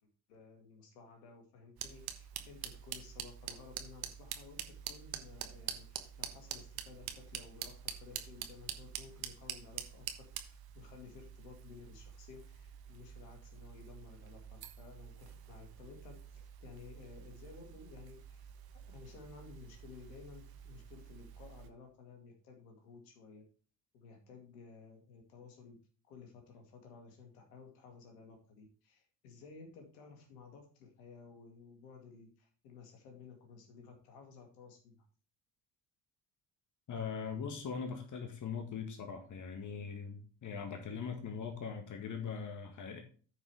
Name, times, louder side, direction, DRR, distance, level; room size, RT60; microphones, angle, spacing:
voice 1, 0.3-18.5 18.9-23.4 23.9-25.8 26.0-35.0, left 5 dB, 70° left, 3 dB, 2.3 m, -55 dB
sound 1, 1.8-21.7, right 9 dB, 45° right, 1.3 m, -47 dB
voice 2, 36.9-43.0, left 6 dB, 35° left, 5 dB, 1.7 m, -41 dB
9.5 x 5.0 x 4.9 m, 0.41 s
figure-of-eight pair, 55°, 50 cm